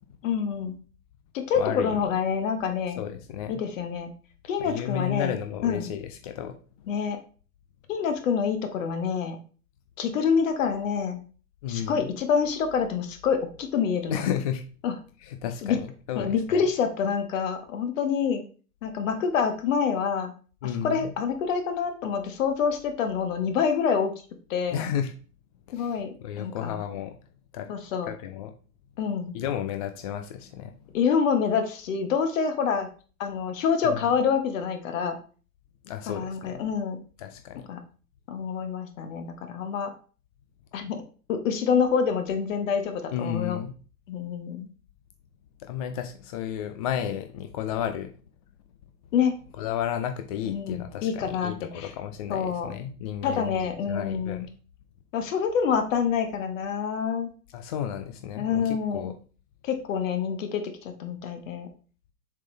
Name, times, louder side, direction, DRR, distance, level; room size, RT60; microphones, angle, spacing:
voice 1, 0.2-0.8 1.3-3.0 3.5-4.1 4.5-5.4 5.6-5.9 6.9-7.2 7.9-9.4 10.0-11.2 11.7-14.2 14.8-15.0 15.6-15.8 16.1-18.5 18.8-20.3 20.6-24.1 24.5-24.8 25.7-26.7 27.7-28.1 29.0-29.3 30.9-32.9 33.2-35.2 36.1-37.0 37.7-37.8 38.3-39.9 40.7-41.0 41.3-43.6 44.1-44.7 49.1-49.3 50.4-51.9 52.3-52.7 53.2-54.5 55.1-57.3 58.4-59.2 59.6-61.7, left 6 dB, 55° left, 7 dB, 1.4 m, -27 dB
voice 2, 1.6-2.0 3.0-3.6 4.6-6.6 11.6-12.1 14.1-14.6 15.2-16.7 20.6-21.1 24.7-25.1 25.7-27.1 27.5-27.8 28.1-28.5 29.3-30.7 33.8-34.0 35.8-36.6 37.2-37.7 43.1-43.7 45.6-48.1 49.6-54.5 57.5-59.1, left 9 dB, 25° left, 6 dB, 0.3 m, -32 dB
7.2 x 3.8 x 3.9 m, 0.39 s
figure-of-eight pair, 105°, 47 cm